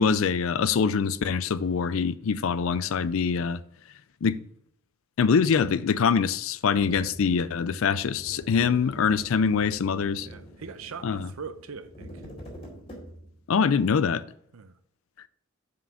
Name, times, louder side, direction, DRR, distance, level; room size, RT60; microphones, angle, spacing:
voice 1, 0.0-3.6 4.2-4.4 5.2-10.3 11.0-11.3 13.5-14.2, left 6 dB, 75° left, 0.4 m, -24 dB
sound 1, 6.8-13.5, equal, 25° left, 2.3 m, -45 dB
voice 2, 8.6-8.9 10.2-12.3 14.5-14.8, right 5 dB, 80° right, 0.6 m, -41 dB
5.5 x 5.1 x 6.5 m
head